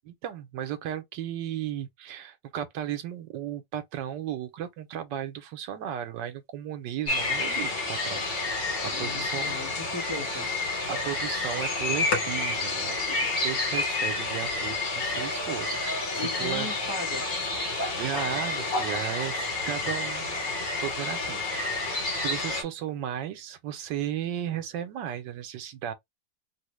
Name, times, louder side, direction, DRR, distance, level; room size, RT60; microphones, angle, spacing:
voice 1, 0.1-9.6 10.9-16.7 17.9-20.5 20.8-25.9, right 10 dB, 75° right, 1.3 m, -35 dB
sound 1, 7.1-22.6, left 3 dB, 80° left, 1.9 m, -29 dB
voice 2, 8.9-10.5 16.2-17.3, left 1 dB, 35° right, 0.3 m, -37 dB
3.6 x 2.1 x 3.0 m
omnidirectional pair, 2.0 m